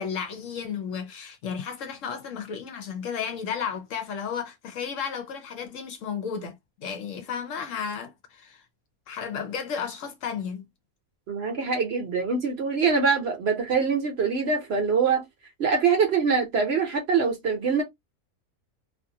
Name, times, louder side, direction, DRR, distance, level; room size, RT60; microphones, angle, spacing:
voice 1, 0.0-8.6 9.1-10.6, left 7 dB, 65° left, 0.9 m, -33 dB
voice 2, 11.3-15.2 15.6-17.8, right 5 dB, 55° right, 0.9 m, -24 dB
2.5 x 2.4 x 2.7 m
omnidirectional pair, 1.5 m